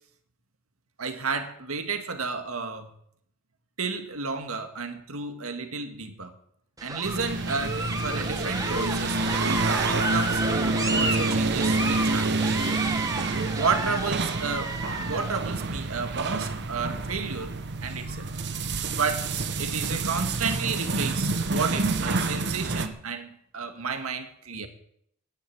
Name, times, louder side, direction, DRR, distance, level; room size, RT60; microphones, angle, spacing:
voice 1, 1.0-2.9 3.8-6.3 6.8-12.5 13.5-14.7 15.1-18.3 19.0-24.7, right 4 dB, 75° right, 1.8 m, -32 dB
sound 1, 6.8-15.4, right 2 dB, 15° right, 1.4 m, -32 dB
sound 2, 7.0-22.9, right 3 dB, 55° right, 1.1 m, -28 dB
10.5 x 10.0 x 9.3 m
head